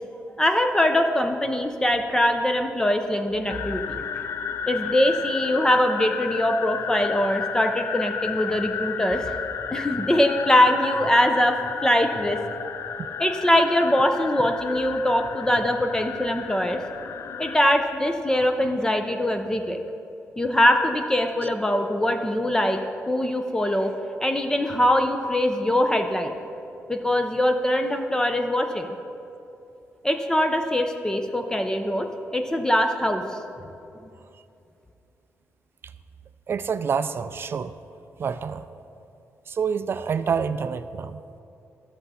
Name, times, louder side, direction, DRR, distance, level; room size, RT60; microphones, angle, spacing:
voice 1, 0.4-4.0 4.7-9.2 9.7-11.6 11.8-12.4 13.2-16.8 17.4-19.8 20.4-22.8 23.1-23.9 24.2-26.4 26.9-28.9 30.0-33.2, left 1 dB, 10° left, 6 dB, 0.6 m, -22 dB
sound 1, 3.5-17.6, left 7 dB, 70° left, 0.4 m, -33 dB
voice 2, 36.5-37.8 38.2-38.7 39.5-41.2, right 6 dB, 50° right, 12 dB, 0.4 m, -27 dB
14.0 x 6.8 x 4.2 m, 2.7 s
cardioid pair, 100°, 5 cm